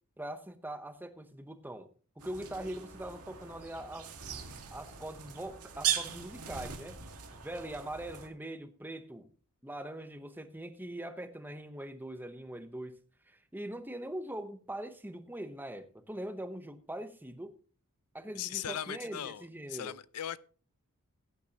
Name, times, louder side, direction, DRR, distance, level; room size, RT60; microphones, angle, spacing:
voice 1, 0.2-1.9 2.2-4.1 4.7-7.0 7.3-9.3 9.6-13.0 13.3-17.5 18.1-20.0, right 1 dB, 10° right, 0.9 m, -42 dB
sound 1, 2.2-8.3, right 9 dB, 85° right, 1.9 m, -39 dB
voice 2, 18.4-19.4 19.7-20.4, left 10 dB, 85° left, 0.5 m, -38 dB
16.5 x 9.3 x 2.9 m
head